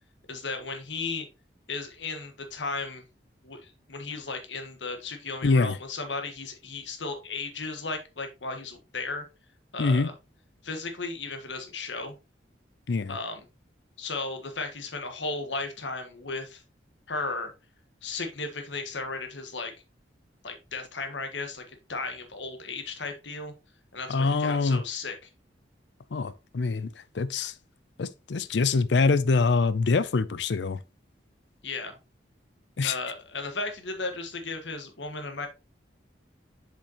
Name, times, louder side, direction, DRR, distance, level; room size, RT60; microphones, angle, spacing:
voice 1, 0.3-1.2 1.7-3.0 3.4-9.2 9.7-10.1 10.6-12.1 13.1-13.4 14.0-16.6 17.1-17.5 18.0-19.7 20.4-23.5 23.9-25.1 31.6-32.0 32.8-35.5, left 3 dB, 90° left, 1.5 m, -35 dB
voice 2, 5.4-5.8 9.8-10.1 12.9-13.2 24.1-24.8 26.1-26.9 27.1-27.5 28.0-30.8 32.8-33.0, left 4 dB, 70° left, 0.5 m, -24 dB
6.9 x 5.2 x 2.9 m
head